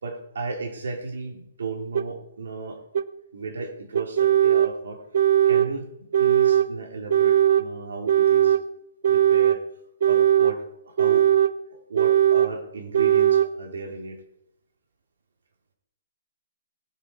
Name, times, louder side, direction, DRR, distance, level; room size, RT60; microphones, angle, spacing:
voice 1, 0.0-2.8 3.3-5.0 5.5-8.6 9.1-9.6 10.0-11.3 11.7-14.2, right 4 dB, 90° right, 2 dB, 3.7 m, -35 dB
sound 1, 2.0-2.1 3.0-3.1 4.0-4.7 5.1-5.7 6.1-6.7 7.1-7.7 8.1-8.6 9.0-9.6 10.0-10.6 11.0-11.5 12.0-12.5 12.9-13.5, right 10 dB, 55° right, 0.6 m, -19 dB
19.5 x 8.7 x 4.8 m, 0.80 s
hypercardioid pair, 180°, 0 cm